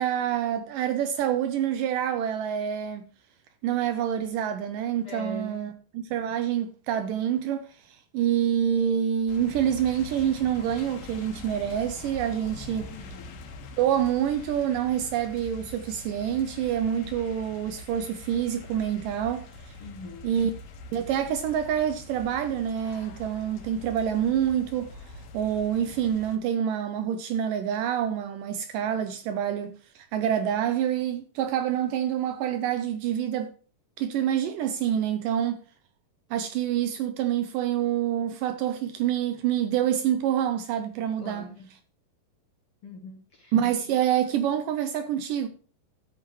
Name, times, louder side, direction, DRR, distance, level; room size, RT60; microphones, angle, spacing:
voice 1, 0.0-3.0 3.6-12.9 13.8-19.7 20.2-20.5 20.9-33.5 34.0-35.6 36.3-41.5 43.5-45.5, right 9 dB, 80° right, 2.0 m, -27 dB
voice 2, 5.0-5.7 12.8-13.4 19.8-20.4 41.2-41.7 42.8-43.5 43.8-44.0, left 2 dB, 55° left, 1.7 m, -42 dB
sound 1, 9.3-26.4, left 2 dB, 80° left, 3.3 m, -44 dB
13.0 x 8.8 x 3.1 m
omnidirectional pair, 4.3 m